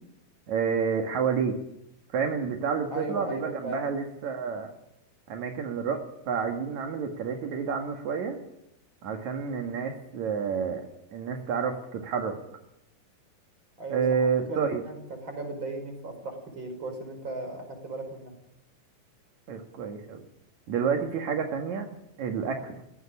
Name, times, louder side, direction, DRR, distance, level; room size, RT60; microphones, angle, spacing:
voice 1, 0.5-1.6 2.1-4.7 5.3-8.4 9.0-10.8 11.1-12.4 13.9-14.8 19.5-20.2 20.7-21.9 22.2-22.8, right 6 dB, 55° right, 4 dB, 2.8 m, -29 dB
voice 2, 2.9-3.9 13.8-18.3, right 2 dB, 30° right, 5 dB, 5.8 m, -37 dB
17.5 x 16.5 x 10.0 m, 0.83 s
omnidirectional pair, 4.4 m